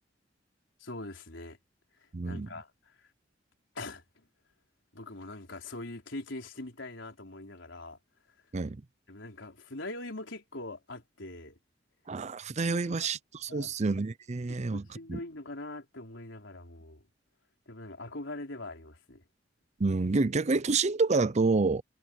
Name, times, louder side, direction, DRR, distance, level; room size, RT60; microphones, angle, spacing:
voice 1, 0.8-1.6 2.0-3.1 3.7-4.3 4.9-8.0 9.1-11.6 12.5-13.1 13.5-13.8 14.5-17.0 17.7-19.2, left 2 dB, 80° left, 4.3 m, -43 dB
voice 2, 2.1-2.5 8.5-8.8 12.1-14.8 15.1-15.2 19.8-21.8, right 3 dB, 35° right, 0.6 m, -28 dB
head